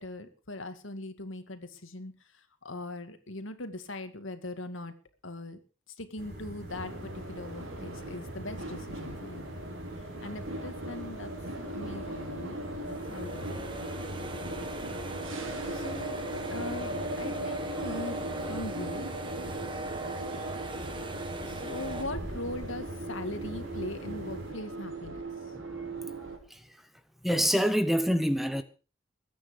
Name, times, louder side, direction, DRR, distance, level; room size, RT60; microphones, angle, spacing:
voice 1, 0.0-2.1 2.6-4.9 5.2-5.6 6.0-9.5 10.2-11.3 11.7-12.6 12.9-13.7 15.7-16.2 16.5-18.2 18.5-19.1 21.4-25.2, left 2 dB, 85° left, 2.2 m, -40 dB
sound 1, 6.2-24.5, right 1 dB, 50° right, 7.1 m, -44 dB
sound 2, 6.7-26.4, right 1 dB, 85° right, 4.0 m, -39 dB
sound 3, 12.9-22.0, right 1 dB, 25° right, 1.5 m, -40 dB
voice 2, 25.5-25.9 26.2-26.8 27.2-28.6, equal, ahead, 0.9 m, -28 dB
21.0 x 9.4 x 5.2 m
head